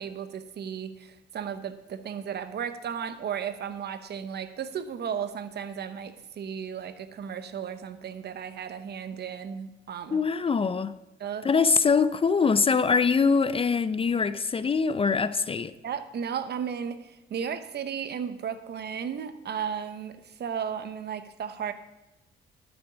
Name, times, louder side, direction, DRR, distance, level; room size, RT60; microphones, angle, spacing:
voice 1, 0.0-10.2 11.2-11.5 15.8-21.7, right 7 dB, 55° right, 0.9 m, -34 dB
voice 2, 10.1-10.9 11.4-15.7, left 5 dB, 30° left, 0.4 m, -23 dB
12.5 x 7.0 x 5.0 m
cardioid pair, 90°, 20 cm